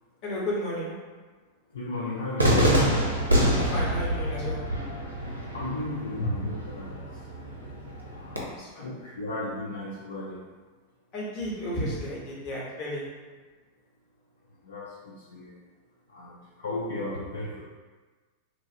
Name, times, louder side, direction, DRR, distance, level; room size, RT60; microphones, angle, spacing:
voice 1, 0.2-1.0 3.3-4.6 8.5-8.9 11.1-13.0, equal, 40° left, -5 dB, 1.0 m, -33 dB
voice 2, 1.7-2.8 5.5-7.3 8.2-8.5 8.8-10.4 14.6-15.5 16.1-17.6, left 1 dB, 65° left, -6 dB, 0.4 m, -34 dB
Cheering / Fireworks, 2.4-8.4, equal, 80° right, 0.5 m, -26 dB
3.0 x 2.4 x 2.6 m, 1.4 s
figure-of-eight pair, 90°, 0 cm